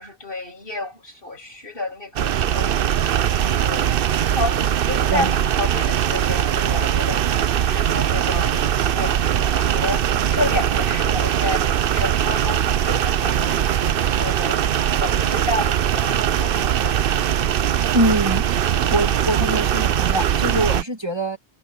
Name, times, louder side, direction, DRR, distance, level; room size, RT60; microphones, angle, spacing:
voice 1, 0.0-17.5 17.8-17.9, left 1 dB, 55° left, 7.0 m, -31 dB
sound 1, 2.2-20.8, right 10 dB, 60° right, 0.8 m, -21 dB
voice 2, 17.9-18.4 18.7-21.4, right 1 dB, 25° right, 1.5 m, -23 dB
omnidirectional pair, 1.1 m